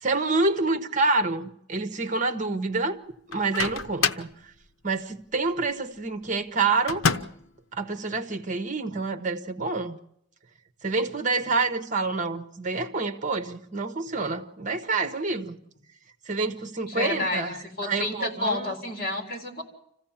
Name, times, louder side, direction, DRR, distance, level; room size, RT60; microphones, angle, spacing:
voice 1, 0.0-3.0 3.3-4.3 4.8-7.0 7.7-10.0 10.8-15.6 16.3-18.7, right 3 dB, 40° right, 9 dB, 1.3 m, -27 dB
Microwave oven, 3.3-4.4 6.9-7.5, left 6 dB, 75° left, 0.8 m, -27 dB
voice 2, 16.9-17.4 17.8-19.6, left 2 dB, 45° left, 3 dB, 4.0 m, -30 dB
26.5 x 15.5 x 7.3 m, 0.75 s
head